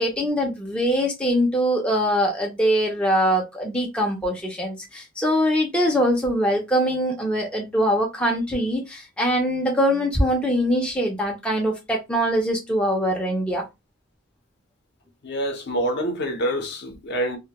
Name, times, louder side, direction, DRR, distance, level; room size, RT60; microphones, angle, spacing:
voice 1, 0.0-13.7, equal, 5° left, 0.4 m, -23 dB
voice 2, 15.2-17.4, right 1 dB, 55° left, 0.6 m, -26 dB
2.1 x 2.1 x 2.8 m
head